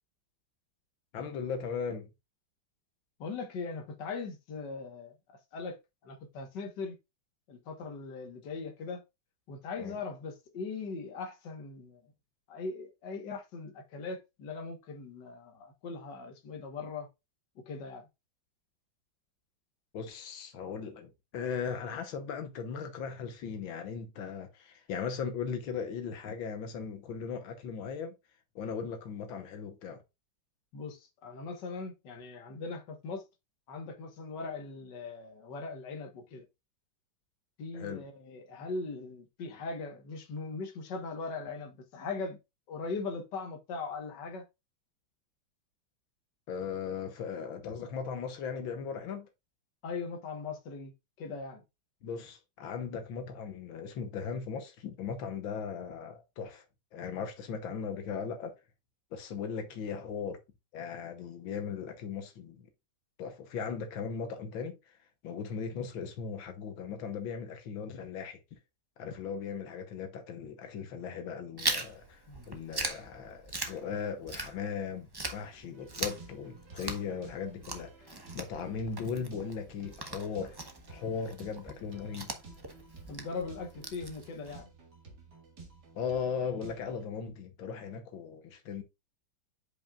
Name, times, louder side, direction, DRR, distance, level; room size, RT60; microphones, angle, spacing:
voice 1, 1.1-2.1 9.8-10.0 19.9-28.2 28.6-30.0 37.7-38.0 46.5-49.3 52.0-56.7 56.9-58.6 59.1-60.4 60.7-62.7 63.2-65.0 65.2-68.4 69.0-80.6 80.9-82.3 86.0-88.8, left 6 dB, 90° left, 1.8 m, -38 dB
voice 2, 3.2-5.2 5.5-5.8 6.0-7.0 7.5-9.0 9.5-12.1 12.5-17.1 17.7-18.1 30.7-33.2 33.7-36.5 37.6-42.4 42.7-44.4 49.8-50.9 51.2-51.6 65.7-65.8 72.3-72.5 83.1-84.7, left 4 dB, 65° left, 1.9 m, -40 dB
Chewing mastication, 71.6-74.8 75.1-84.6, right 2 dB, 25° right, 0.4 m, -39 dB
sound 1, 75.7-87.1, right 3 dB, 55° right, 2.6 m, -53 dB
8.8 x 5.3 x 2.4 m
omnidirectional pair, 2.1 m